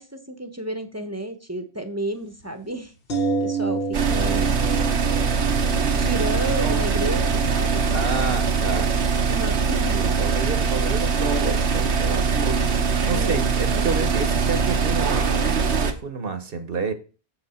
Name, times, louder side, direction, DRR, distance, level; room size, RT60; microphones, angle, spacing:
voice 1, 0.0-2.9 3.4-4.5 5.9-8.0 8.7-9.0 9.3-10.0 13.1-13.5 13.7-13.8, right 1 dB, 15° right, 8 dB, 0.9 m, -32 dB
sound 1, 3.1-13.0 13.3-13.4, right 4 dB, 60° left, 1.2 m, -31 dB
sound 2, 3.9-15.9, right 5 dB, 85° right, 1.3 m, -22 dB
voice 2, 7.9-8.9 9.9-16.9, right 4 dB, 60° right, 9 dB, 1.2 m, -30 dB
7.4 x 6.2 x 4.3 m, 0.35 s
omnidirectional pair, 1.1 m